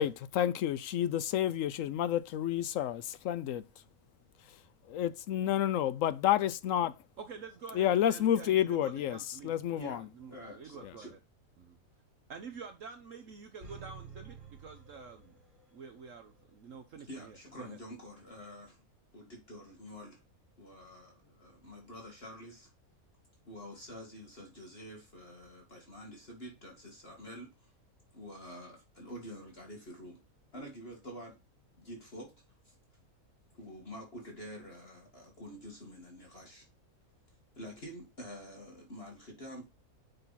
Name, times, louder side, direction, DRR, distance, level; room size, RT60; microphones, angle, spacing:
voice 1, 0.0-3.6 4.9-6.9 7.8-9.2 9.4-10.0, left 11 dB, 70° left, 0.9 m, -29 dB
voice 2, 7.2-9.8 10.1-11.2 11.6-11.8 12.3-15.4 15.7-17.8, right 5 dB, 60° right, 1.2 m, -48 dB
voice 3, 9.8-11.1 17.1-18.8 19.1-20.2 20.6-22.7 23.5-27.7 28.1-30.2 30.5-31.4 31.8-32.3 32.6-32.7 33.5-36.7 37.6-39.6, equal, 40° left, 2.2 m, -48 dB
sound 1, 13.6-15.8 16.1-16.2, right 6 dB, 40° right, 3.5 m, -50 dB
6.8 x 5.8 x 4.1 m
omnidirectional pair, 1.6 m